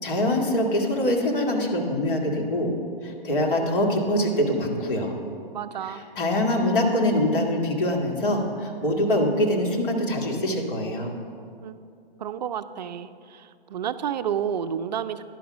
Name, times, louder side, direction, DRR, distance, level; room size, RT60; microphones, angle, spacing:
voice 1, 0.0-2.7 3.0-5.1 6.2-11.1, left 1 dB, 60° left, 1 dB, 1.9 m, -24 dB
voice 2, 5.5-6.0 11.6-11.8 12.2-15.2, right 8 dB, 45° right, 12 dB, 0.4 m, -30 dB
10.5 x 5.9 x 7.0 m, 2.4 s
hypercardioid pair, 135°, 30 cm